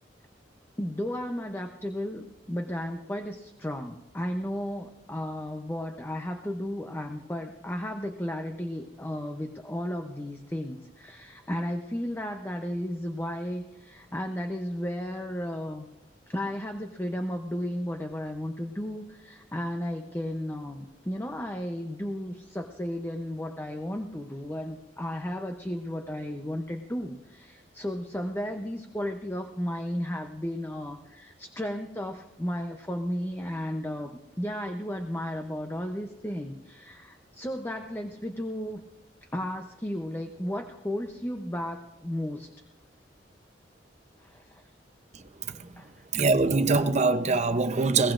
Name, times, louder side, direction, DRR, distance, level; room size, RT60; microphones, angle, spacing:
voice 1, 0.8-15.8 16.3-38.8 39.3-42.5 44.2-44.6 45.8-45.9, equal, 15° left, 0.7 m, -34 dB
voice 2, 46.1-48.1, right 3 dB, 40° right, 0.8 m, -23 dB
21.0 x 18.0 x 2.6 m
head